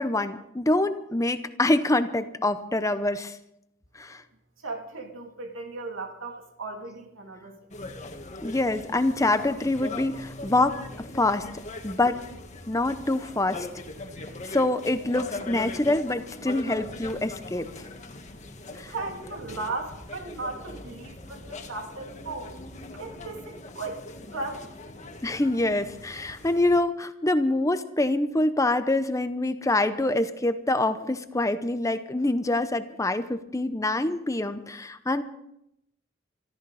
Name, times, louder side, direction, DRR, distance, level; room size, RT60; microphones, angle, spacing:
voice 1, 0.0-3.4 4.0-4.2 8.4-10.8 11.1-11.5 11.8-12.2 12.7-13.7 14.4-17.7 18.8-18.9 25.2-35.2, left 2 dB, 15° left, 11 dB, 0.7 m, -25 dB
voice 2, 4.6-7.9 18.9-22.5 22.9-24.0 24.3-24.7, right 3 dB, 85° right, 2 dB, 2.8 m, -36 dB
sound 1, 7.7-26.8, left 2 dB, 35° left, 1.7 m, -41 dB
24.0 x 14.0 x 4.1 m, 0.80 s
head